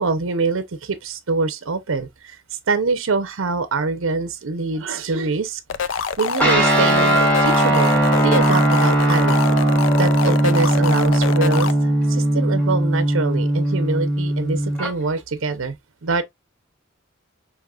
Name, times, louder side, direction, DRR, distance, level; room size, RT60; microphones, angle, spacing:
voice 1, 0.0-2.4 2.7-5.6 6.2-9.4 10.0-15.8 16.0-16.2, right 4 dB, 80° right, 0.7 m, -24 dB
sound 1, 5.7-11.7, left 6 dB, 70° left, 0.5 m, -26 dB
Guitar, 6.4-14.9, right 1 dB, 5° left, 1.3 m, -18 dB
6.2 x 2.9 x 2.3 m
head